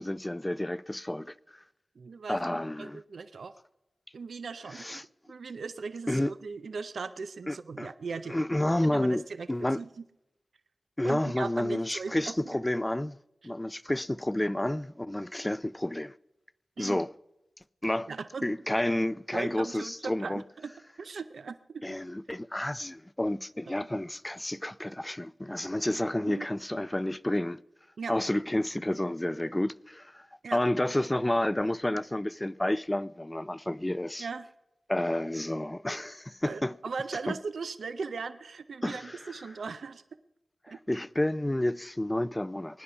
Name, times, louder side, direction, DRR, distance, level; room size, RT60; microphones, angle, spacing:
voice 1, 0.0-1.3 2.3-3.0 4.8-5.0 6.1-6.3 7.5-7.9 8.3-9.8 11.0-13.2 13.4-16.1 16.8-17.1 17.8-18.1 18.4-20.4 21.8-27.6 28.1-30.3 30.5-34.3 34.9-36.7 37.3-37.4 38.8-39.0 40.9-42.8, left 1 dB, 15° left, 0.4 m, -30 dB
voice 2, 2.0-3.6 4.1-5.0 5.3-8.4 8.8-9.9 11.0-12.6 13.4-13.5 16.8-17.0 18.1-18.4 19.3-20.7 21.0-21.8 23.7-23.9 26.3-26.5 28.0-28.1 30.4-30.6 34.2-34.5 36.4-40.0 40.7-40.8, right 4 dB, 85° right, 0.5 m, -38 dB
22.5 x 9.8 x 5.8 m
wide cardioid pair, 70°, 0 cm